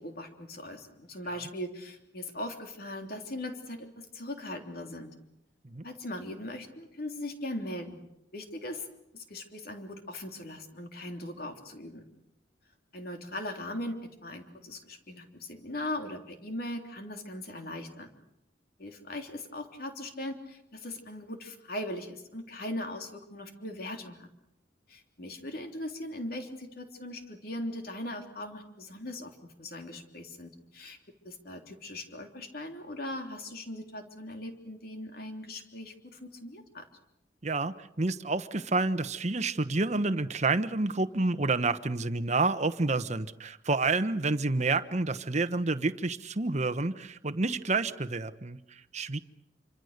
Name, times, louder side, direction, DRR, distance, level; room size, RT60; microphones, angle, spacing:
voice 1, 0.0-5.1 5.8-8.0 8.3-8.9 9.1-12.0 12.9-14.0 14.2-18.1 18.8-24.3 24.9-31.0 31.2-36.8, left 1 dB, 55° left, 4 dB, 3.3 m, -39 dB
voice 2, 37.4-49.2, right 3 dB, 40° right, 11 dB, 1.1 m, -29 dB
27.0 x 25.5 x 6.7 m, 0.80 s
head